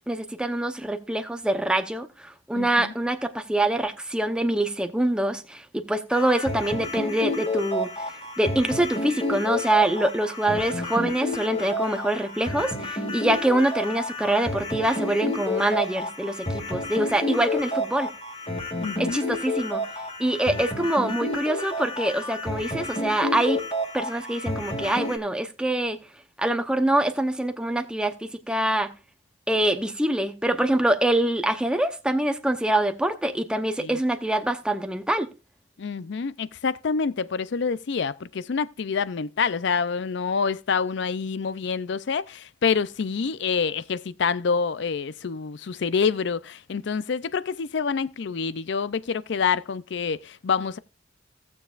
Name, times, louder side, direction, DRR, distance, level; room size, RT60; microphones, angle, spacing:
voice 1, 0.1-7.9 8.4-18.1 19.0-19.8 20.2-23.6 23.9-26.0 26.4-28.9 29.5-35.3, right 1 dB, 5° right, 0.8 m, -25 dB
voice 2, 2.5-2.9 18.8-19.2 33.8-34.0 35.8-50.8, left 5 dB, 60° left, 0.5 m, -27 dB
sound 1, 6.1-25.2, left 1 dB, 30° left, 2.2 m, -30 dB
17.0 x 7.0 x 2.5 m
head